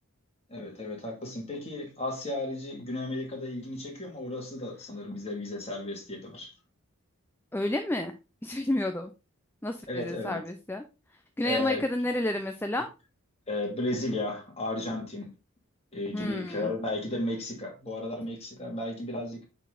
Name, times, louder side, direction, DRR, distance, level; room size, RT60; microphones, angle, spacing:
voice 1, 0.5-6.5 9.9-10.4 11.4-11.9 13.5-15.3 15.9-19.4, left 2 dB, 30° left, 2.3 m, -34 dB
voice 2, 7.5-8.1 8.4-9.1 9.6-10.8 11.4-12.9 16.1-16.7, left 1 dB, 10° left, 0.5 m, -30 dB
8.6 x 4.2 x 3.9 m
head